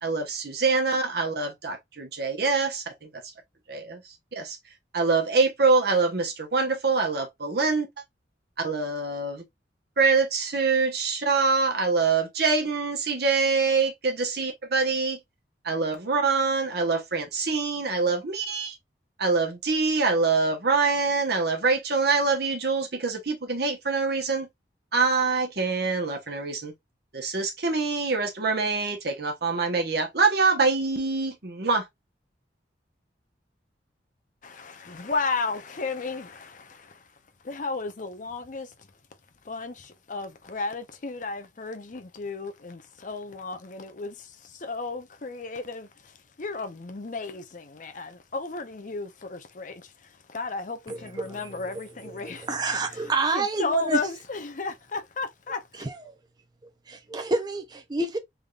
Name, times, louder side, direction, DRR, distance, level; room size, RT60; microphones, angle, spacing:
voice 1, 0.0-3.2 3.7-4.6 4.9-7.9 8.6-9.4 10.0-15.2 15.6-18.8 19.2-24.5 24.9-26.7 27.1-31.9, right 4 dB, 60° right, 1.1 m, -25 dB
voice 2, 34.4-38.9 39.4-52.6 52.8-55.9, left 4 dB, 45° left, 0.6 m, -34 dB
voice 3, 52.5-54.0 55.8-56.2 56.9-58.2, right 3 dB, 25° right, 0.6 m, -28 dB
3.6 x 3.5 x 2.4 m
head